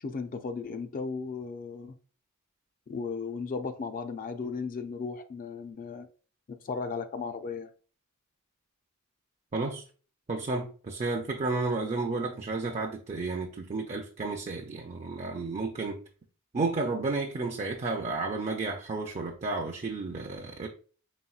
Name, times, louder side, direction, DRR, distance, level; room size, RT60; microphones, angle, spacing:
voice 1, 0.0-2.0 2.9-6.1 6.5-7.7, left 4 dB, 40° left, 0.4 m, -35 dB
voice 2, 9.5-9.8 10.3-16.0 16.5-20.7, right 3 dB, 30° right, 0.4 m, -32 dB
4.2 x 3.8 x 2.3 m
head